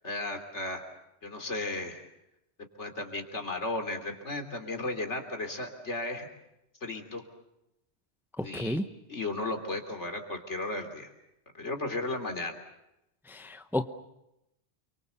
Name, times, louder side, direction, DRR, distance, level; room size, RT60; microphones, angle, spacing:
voice 1, 0.0-0.8 1.2-2.0 2.8-6.3 6.8-7.2 8.4-8.8 9.1-11.1 11.5-12.6, left 2 dB, 85° left, 5 dB, 3.6 m, -35 dB
voice 2, 8.4-8.8 13.3-13.8, left 1 dB, ahead, 9 dB, 0.9 m, -31 dB
29.0 x 24.0 x 7.1 m, 0.86 s
omnidirectional pair, 1.2 m